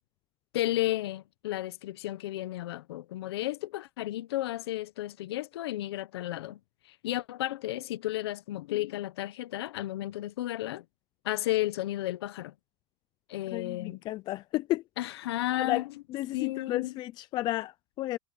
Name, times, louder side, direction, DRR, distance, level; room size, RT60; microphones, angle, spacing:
voice 1, 0.5-6.6 6.8-10.8 11.2-12.5 13.3-14.0 15.0-15.8 16.3-16.9, left 15 dB, 85° left, 1.0 m, -33 dB
voice 2, 13.5-14.8 15.5-18.2, left 16 dB, 35° left, 0.4 m, -32 dB
supercardioid pair, 145°, 13 cm